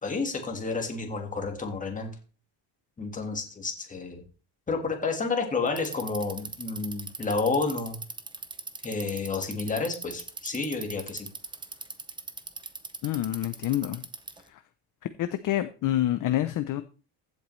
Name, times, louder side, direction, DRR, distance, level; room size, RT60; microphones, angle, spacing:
voice 1, 0.0-2.1 3.0-4.2 4.7-8.0 8.8-11.3, left 4 dB, 15° left, 3 dB, 1.7 m, -30 dB
Bicycle, 5.7-14.5, right 4 dB, 10° right, 0.5 m, -39 dB
voice 2, 13.0-14.0 14.5-14.6 15.2-16.8, left 13 dB, 45° left, 10 dB, 0.6 m, -27 dB
15.0 x 8.0 x 3.2 m, 0.37 s
cardioid pair, 180°, 45 cm